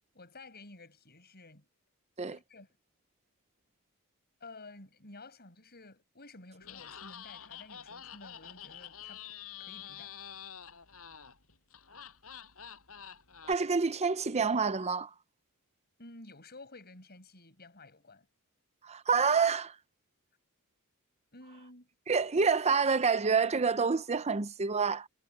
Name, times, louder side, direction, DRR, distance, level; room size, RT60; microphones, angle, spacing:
voice 1, 0.1-1.7 2.3-2.8 4.4-9.2 9.6-10.2 16.0-18.3 21.3-21.9, left 2 dB, 45° left, 7.8 m, -52 dB
Laughter, 6.6-13.5, left 9 dB, 70° left, 6.5 m, -48 dB
voice 2, 13.5-15.1 18.8-19.8 22.1-25.1, right 5 dB, 30° right, 0.6 m, -27 dB
head